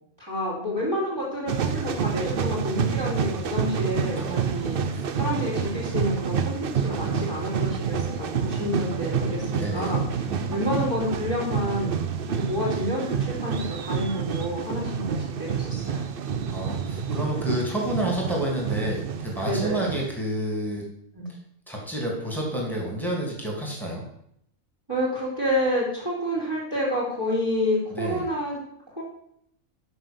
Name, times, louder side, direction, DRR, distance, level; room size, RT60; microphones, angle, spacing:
voice 1, 0.2-4.8 5.1-16.0 19.4-19.8 21.1-21.3 24.9-28.6 29.0-29.1, left 1 dB, 15° right, -4 dB, 3.1 m, -29 dB
sound 1, 1.5-20.1, right 7 dB, 55° right, 0.7 m, -28 dB
voice 2, 4.0-4.4 4.9-5.0 6.9-7.3 9.5-10.0 10.2-10.8 16.5-20.8 21.7-24.0 27.9-28.2, right 1 dB, ahead, -3 dB, 2.8 m, -30 dB
6.8 x 6.3 x 6.9 m, 0.72 s
omnidirectional pair, 1.5 m